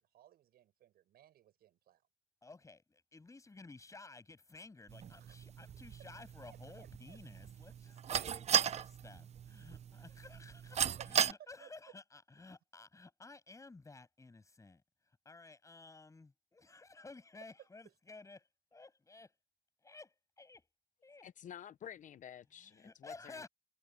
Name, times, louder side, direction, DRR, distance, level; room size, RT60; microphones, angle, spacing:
voice 1, 0.0-2.0 5.2-5.4 6.5-7.2 9.6-9.7 11.0-11.3 11.6-11.7 16.7-16.8, right 12 dB, 65° right, 7.8 m, -61 dB
voice 2, 2.4-14.8 15.2-19.3 19.8-20.7 21.0-21.3 22.6-23.5, left 3 dB, 20° left, 8.0 m, -55 dB
sound 1, 4.9-11.3, right 8 dB, 40° right, 0.7 m, -37 dB
voice 3, 21.2-23.5, left 10 dB, 50° left, 0.8 m, -51 dB
cardioid pair, 110°, 17 cm